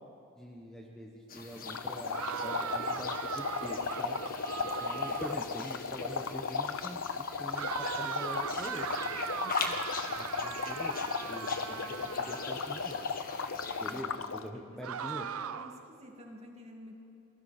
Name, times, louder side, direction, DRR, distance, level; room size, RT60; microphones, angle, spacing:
voice 1, 0.4-4.2 4.6-7.0 7.4-8.9 10.1-11.0 11.3-13.0 13.8-15.3, equal, 5° left, -1 dB, 1.2 m, -44 dB
sound 1, 1.3-14.0, left 4 dB, 40° left, 1.7 m, -43 dB
sound 2, 1.7-14.5, left 5 dB, 65° left, 0.7 m, -36 dB
sound 3, 2.1-5.5 7.6-12.8 14.8-15.9, right 8 dB, 85° right, 0.6 m, -39 dB
voice 2, 15.0-16.9, equal, 30° right, 0 dB, 2.6 m, -50 dB
29.0 x 21.5 x 4.4 m, 2.7 s
head